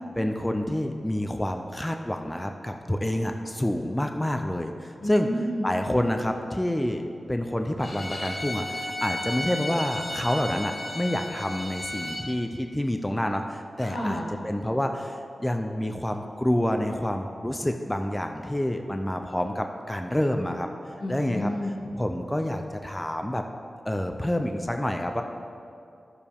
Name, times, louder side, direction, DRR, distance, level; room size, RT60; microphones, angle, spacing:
voice 1, 0.2-5.3 5.6-20.7 21.1-21.5 21.9-23.4 23.9-25.2, left 1 dB, 15° left, 5 dB, 0.6 m, -28 dB
voice 2, 5.0-5.7 13.8-14.3 21.0-21.9, equal, 90° left, -5 dB, 2.1 m, -30 dB
Bowed string instrument, 7.8-12.2, left 1 dB, 55° left, 1.9 m, -34 dB
13.5 x 6.9 x 3.6 m, 2.5 s
cardioid pair, 60°, 0 cm